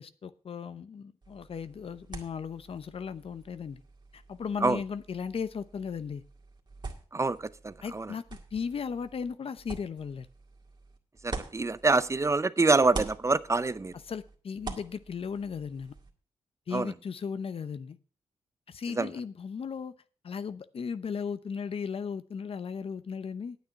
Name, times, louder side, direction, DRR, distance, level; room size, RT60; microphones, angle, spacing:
voice 1, 0.0-3.8 4.1-6.2 7.8-8.2 8.5-10.3 14.1-15.9 16.7-18.0 18.7-19.9 20.2-23.6, left 6 dB, 60° left, 0.8 m, -36 dB
sound 1, 1.2-12.4 12.7-16.1, right 3 dB, 40° right, 2.0 m, -45 dB
voice 2, 7.1-8.1 11.2-13.9 16.7-16.9 19.0-19.1, right 3 dB, 25° right, 0.6 m, -26 dB
9.3 x 9.0 x 5.8 m
cardioid pair, 75°, 11 cm